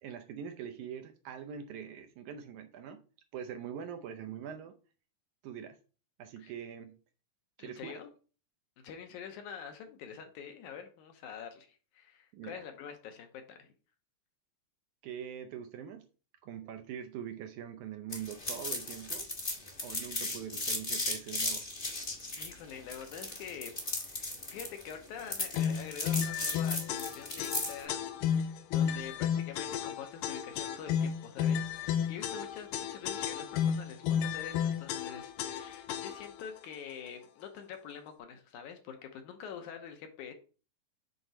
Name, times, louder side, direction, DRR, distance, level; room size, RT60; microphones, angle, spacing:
voice 1, 0.0-3.0 3.3-4.8 5.4-5.8 6.2-7.0 7.6-8.0 12.3-12.6 15.0-16.1 16.4-19.3 19.8-21.6, right 8 dB, 75° right, 1.8 m, -43 dB
voice 2, 7.6-8.1 8.8-13.7 22.4-23.8 24.0-40.3, left 7 dB, 75° left, 2.1 m, -46 dB
sound 1, 18.1-27.8, left 2 dB, 40° left, 0.7 m, -36 dB
sound 2, 25.5-36.4, left 8 dB, 90° left, 2.4 m, -33 dB
8.1 x 3.8 x 4.5 m
omnidirectional pair, 4.0 m